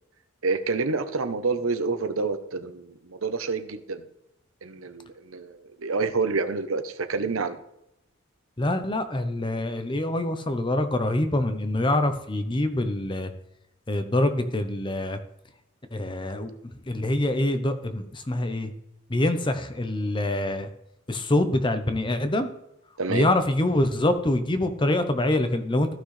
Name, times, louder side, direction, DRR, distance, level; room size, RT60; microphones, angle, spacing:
voice 1, 0.4-4.0 4.6-7.6 23.0-23.3, right 4 dB, 85° right, 10 dB, 0.8 m, -28 dB
voice 2, 8.6-13.3 13.9-15.2 15.9-16.5 16.9-18.7 19.1-20.7 21.1-22.5 23.1-25.9, left 1 dB, 25° left, 9 dB, 0.7 m, -25 dB
14.5 x 6.1 x 3.3 m, 0.84 s
head